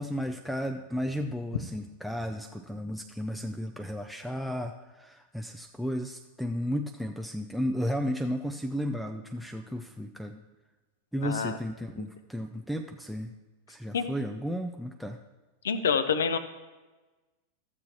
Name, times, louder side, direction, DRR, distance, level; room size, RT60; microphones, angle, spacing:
voice 1, 0.0-10.4 11.1-13.3 13.7-15.2, equal, ahead, 5 dB, 0.4 m, -33 dB
voice 2, 11.2-11.6 13.9-14.1 15.6-16.4, left 6 dB, 65° left, 11 dB, 0.6 m, -27 dB
14.0 x 7.3 x 2.9 m, 1.2 s
figure-of-eight pair, 90°, 0 cm